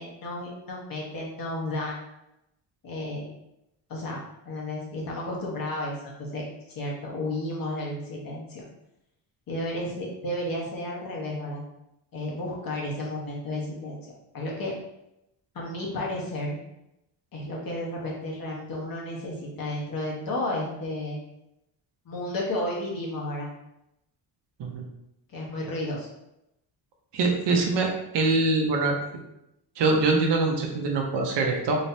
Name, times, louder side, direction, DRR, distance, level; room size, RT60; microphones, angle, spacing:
voice 1, 0.0-2.0 2.8-3.3 3.9-6.4 6.7-8.6 9.5-11.6 12.1-14.0 14.3-14.7 15.5-16.6 17.3-21.2 22.0-23.5 25.3-26.1, left 1 dB, 45° left, -3 dB, 1.2 m, -32 dB
voice 2, 27.1-27.9 28.1-28.9 29.8-31.8, right 3 dB, 60° right, 1 dB, 0.8 m, -23 dB
4.0 x 3.3 x 2.7 m, 0.85 s
cardioid pair, 145°, 46 cm